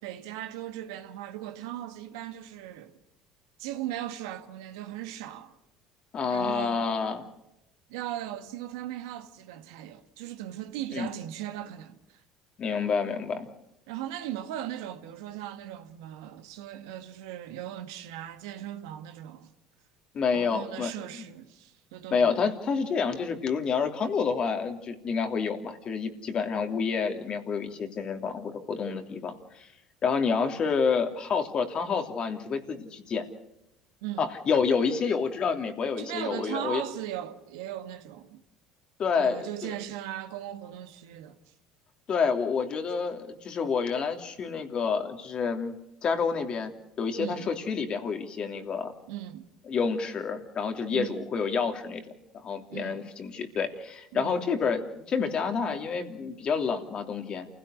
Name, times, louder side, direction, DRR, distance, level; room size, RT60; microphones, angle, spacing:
voice 1, 0.0-2.9 3.6-5.6 6.3-6.8 7.9-12.2 13.9-19.5 20.3-22.3 34.0-34.3 36.0-38.4 39.1-41.4 47.2-47.5 49.1-49.5 50.9-51.3 52.7-53.1 54.1-54.4, right 12 dB, 85° right, 1.6 m, -38 dB
voice 2, 6.1-7.2 10.9-11.1 12.6-13.5 20.1-21.3 22.1-29.7 30.0-33.2 34.2-36.8 39.0-39.8 42.1-45.8 46.0-46.7 47.0-48.9 49.7-52.0 52.3-57.5, left 5 dB, 45° left, 3.0 m, -28 dB
28.5 x 16.5 x 6.5 m
supercardioid pair, 80°, 2 cm